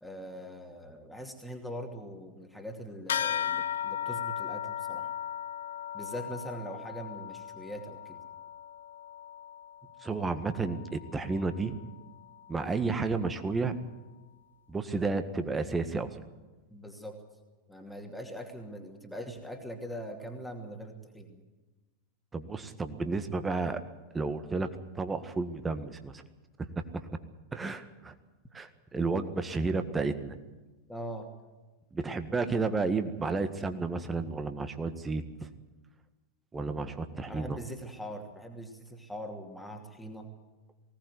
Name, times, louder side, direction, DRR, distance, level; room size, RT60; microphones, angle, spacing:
voice 1, 0.0-5.1 5.9-8.2 16.7-17.2 17.7-21.4 30.9-31.3 37.3-40.3, equal, ahead, 2 dB, 2.6 m, -42 dB
sound 1, 3.1-12.9, left 10 dB, 60° left, 0.8 m, -37 dB
voice 2, 10.0-11.7 12.5-13.7 14.7-16.2 22.3-23.8 24.1-24.7 25.0-26.2 26.6-27.0 27.5-28.1 28.5-30.4 31.9-35.5 36.5-37.6, right 3 dB, 15° right, 9 dB, 1.6 m, -32 dB
20.0 x 18.0 x 8.1 m, 1.2 s
figure-of-eight pair, 90°, 0 cm